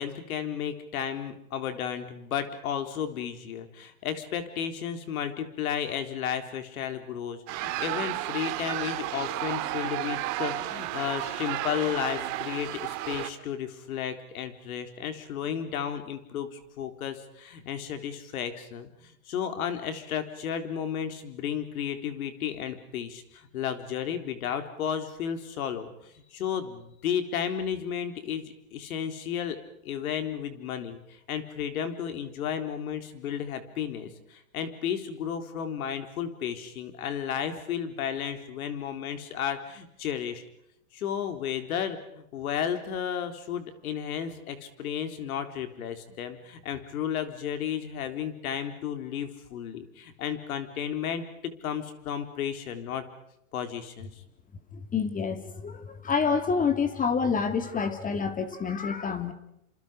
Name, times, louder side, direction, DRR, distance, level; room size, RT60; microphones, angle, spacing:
voice 1, 0.0-29.6 29.8-40.4 40.9-53.0 53.5-54.1, left 8 dB, 70° left, 8 dB, 4.0 m, -33 dB
sound 1, 7.5-13.3, right 16 dB, 40° right, 2.1 m, -32 dB
voice 2, 54.7-59.3, left 5 dB, 20° left, 10 dB, 2.2 m, -28 dB
29.0 x 27.0 x 5.2 m, 0.80 s
hypercardioid pair, 125°, 44 cm